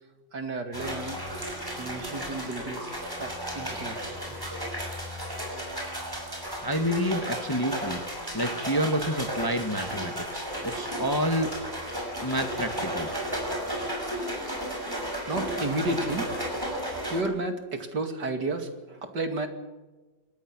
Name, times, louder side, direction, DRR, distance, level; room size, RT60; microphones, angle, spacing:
voice 1, 0.3-1.4 1.7-4.1 15.3-19.5, right 2 dB, 65° right, 6 dB, 3.0 m, -33 dB
sound 1, 0.7-17.2, equal, 10° right, 6.2 m, -34 dB
voice 2, 6.6-8.0 8.3-11.5 12.2-13.1, equal, 10° left, 6 dB, 1.6 m, -28 dB
27.0 x 19.0 x 6.2 m, 1.2 s
omnidirectional pair, 2.0 m